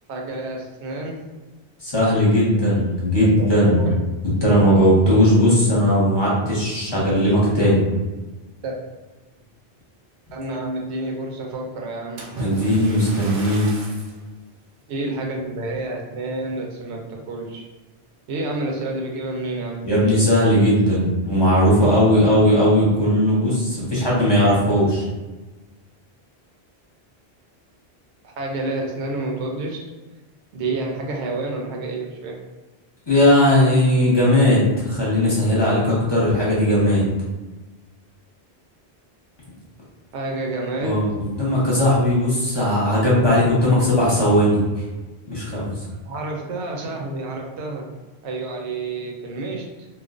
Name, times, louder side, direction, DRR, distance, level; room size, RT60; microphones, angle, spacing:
voice 1, 0.1-1.3 3.4-3.5 3.8-4.0 8.6-8.8 10.3-12.2 14.9-17.6 18.3-19.9 28.2-29.9 30.5-32.4 40.1-41.0 46.1-47.9 48.2-49.9, right 2 dB, 90° right, 0 dB, 0.9 m, -29 dB
voice 2, 1.8-3.8 4.4-7.8 12.4-13.7 19.8-25.1 33.1-37.0 40.8-44.6 45.3-45.7, equal, 25° left, -7 dB, 0.7 m, -18 dB
Splash splatter, 12.2-14.2 14.9-15.1 15.7-15.8, right 2 dB, 60° right, 0.7 m, -35 dB
2.3 x 2.2 x 2.4 m, 1.2 s
omnidirectional pair, 1.1 m